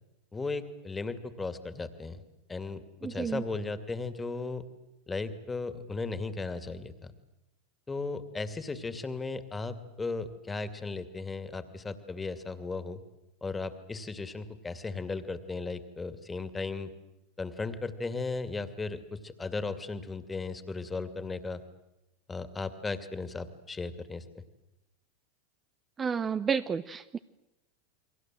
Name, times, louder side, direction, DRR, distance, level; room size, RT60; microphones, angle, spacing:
voice 1, 0.3-2.2 2.5-4.6 5.1-7.1 7.9-13.0 13.4-16.9 17.4-21.6 22.3-24.4, left 3 dB, 15° left, 11 dB, 2.5 m, -36 dB
voice 2, 3.0-3.4 26.0-27.2, right 6 dB, 25° right, 11 dB, 0.9 m, -31 dB
30.0 x 23.0 x 7.8 m, 0.91 s
hypercardioid pair, 90°, 0 cm